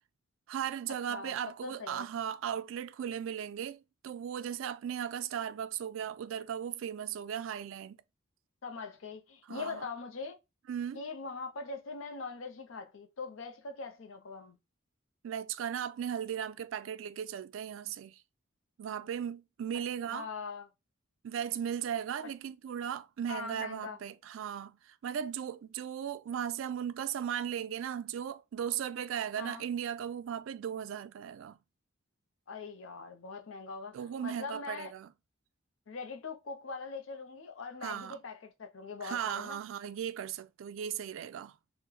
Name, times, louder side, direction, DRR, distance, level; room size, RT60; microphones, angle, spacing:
voice 1, 0.5-8.0 9.5-9.9 10.7-11.0 15.2-18.2 18.8-20.3 21.2-31.6 33.9-35.1 37.8-38.2 39.0-41.5, right 9 dB, 70° right, 0.3 m, -37 dB
voice 2, 1.6-2.1 8.6-10.4 10.9-14.6 20.1-20.7 22.2-22.3 23.3-24.0 29.4-29.6 32.5-34.0 34.2-34.9 35.9-39.6, left 4 dB, 70° left, 0.6 m, -42 dB
3.1 x 2.1 x 3.6 m
head